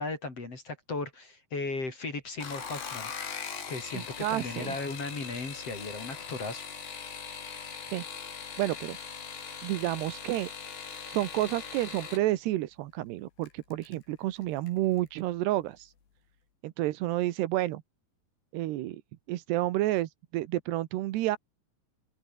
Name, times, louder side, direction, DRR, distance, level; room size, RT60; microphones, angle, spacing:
voice 1, 0.0-3.1 3.7-6.6, left 3 dB, 35° left, 5.4 m, -36 dB
sound 1, 2.3-12.2 13.4-13.9 14.4-14.8 15.1-15.2, left 7 dB, 85° left, 6.7 m, -41 dB
voice 2, 3.9-4.8 7.9-8.0 8.6-9.0 9.6-10.5 11.1-15.9 16.6-17.8 18.5-19.0 19.3-21.4, right 15 dB, 85° right, 3.2 m, -30 dB
open air
omnidirectional pair, 4.7 m